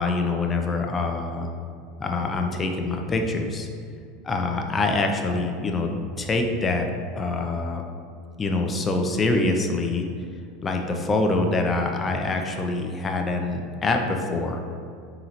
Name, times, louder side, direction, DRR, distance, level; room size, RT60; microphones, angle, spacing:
voice 1, 0.0-1.5 2.0-3.7 4.2-5.9 6.2-6.9 7.2-7.8 8.4-10.0 10.6-14.6, left 3 dB, 25° left, 3 dB, 0.5 m, -25 dB
3.9 x 3.8 x 2.9 m, 2.3 s
hypercardioid pair, 95°, 0 cm